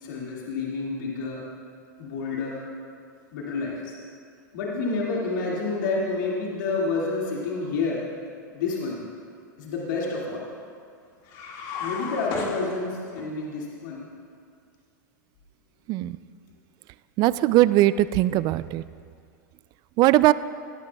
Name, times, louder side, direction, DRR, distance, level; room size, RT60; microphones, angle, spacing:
voice 1, 0.0-1.4 2.0-2.6 3.3-3.9 4.5-8.0 8.5-9.0 9.6-10.4 11.8-14.0, left 3 dB, 75° left, -4 dB, 2.1 m, -29 dB
sound 1, 11.2-13.3, left 5 dB, 45° left, 1.9 m, -34 dB
voice 2, 17.2-18.8 20.0-20.3, right 16 dB, 40° right, 17 dB, 0.3 m, -20 dB
18.0 x 11.5 x 2.3 m, 2.3 s
hypercardioid pair, 115°, 11 cm